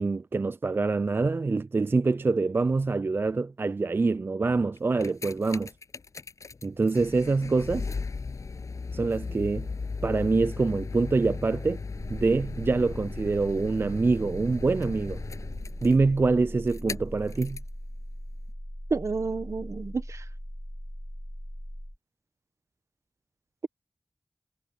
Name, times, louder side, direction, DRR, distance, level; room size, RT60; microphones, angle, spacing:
voice 1, 0.0-5.7 6.6-7.9 8.9-9.7 10.0-11.8 12.1-15.2 15.8-17.6, right 3 dB, 45° right, 0.3 m, -25 dB
sound 1, 4.8-17.8 18.5-18.6, left 4 dB, 85° left, 7.9 m, -37 dB
sound 2, 11.9-22.0, equal, ahead, 2.8 m, -40 dB
voice 2, 18.9-20.2, right 4 dB, 70° right, 1.4 m, -30 dB
wide cardioid pair, 60°, 5 cm